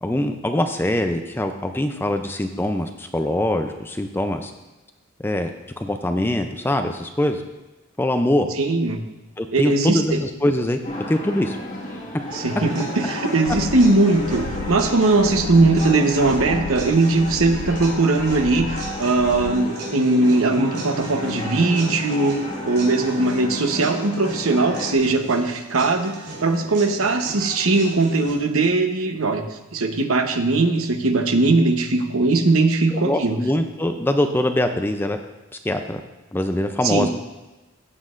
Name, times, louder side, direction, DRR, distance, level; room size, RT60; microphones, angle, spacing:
voice 1, 0.0-4.5 5.2-5.5 5.8-7.4 8.0-8.5 9.4-10.8 11.1-11.6 32.9-35.2 35.6-36.0 36.3-37.1, left 1 dB, 10° left, 6 dB, 0.4 m, -23 dB
voice 2, 8.6-9.0 9.5-10.2 12.3-18.7 19.0-22.4 22.6-29.4 29.7-33.4 36.8-37.1, right 3 dB, 85° right, 5 dB, 1.0 m, -20 dB
sound 1, 10.8-24.9, left 1 dB, 35° left, 1.6 m, -32 dB
sound 2, 12.3-28.3, right 2 dB, 50° right, 3.5 m, -37 dB
sound 3, 13.5-19.5, left 7 dB, 75° left, 0.4 m, -35 dB
15.0 x 7.5 x 2.5 m, 1.1 s
head